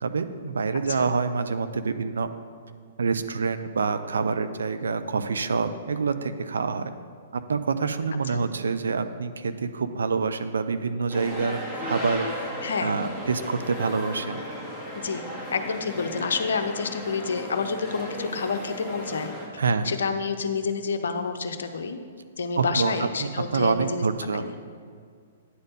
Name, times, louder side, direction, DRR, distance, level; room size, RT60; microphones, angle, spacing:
voice 1, 0.0-2.3 3.0-6.9 7.3-12.5 12.8-14.4 19.6-19.9 22.6-22.9 23.2-24.6, right 4 dB, 70° right, 10 dB, 0.5 m, -27 dB
sound 1, 11.1-19.5, equal, 10° right, 1.9 m, -35 dB
voice 2, 12.6-13.0 14.9-15.2 15.5-19.4 19.8-22.0 22.4-24.0 24.3-24.5, left 5 dB, 70° left, 7 dB, 0.7 m, -29 dB
9.4 x 4.3 x 6.5 m, 2.1 s
figure-of-eight pair, 115°, 0 cm